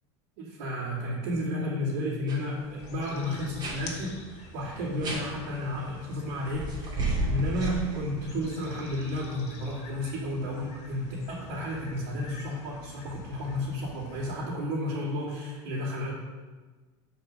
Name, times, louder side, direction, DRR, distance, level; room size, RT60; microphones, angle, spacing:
voice 1, 0.4-16.1, left 1 dB, 75° right, -9 dB, 2.5 m, -32 dB
sound 1, 2.3-2.4 2.7-2.9 3.6-3.8 5.0-5.2 6.5-8.4, right 1 dB, 30° right, 2.8 m, -31 dB
sound 2, 2.8-14.4, left 2 dB, 50° left, 1.7 m, -48 dB
7.2 x 5.2 x 6.5 m, 1.4 s
supercardioid pair, 110°, 14 cm